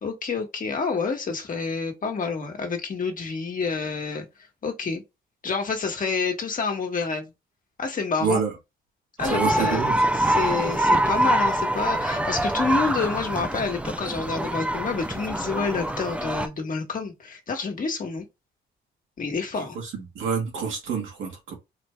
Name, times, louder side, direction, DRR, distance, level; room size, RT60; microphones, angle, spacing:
voice 1, 0.0-4.3 4.6-5.0 5.4-7.3 7.8-8.4 9.2-9.8 10.1-18.3 19.2-19.8, left 4 dB, 45° left, 1.6 m, -28 dB
voice 2, 8.2-8.5 9.2-10.0 19.9-21.6, right 6 dB, 75° right, 2.0 m, -27 dB
sound 1, 9.2-16.5, right 1 dB, 5° right, 0.6 m, -25 dB
4.4 x 2.6 x 3.4 m
cardioid pair, 90°, 20 cm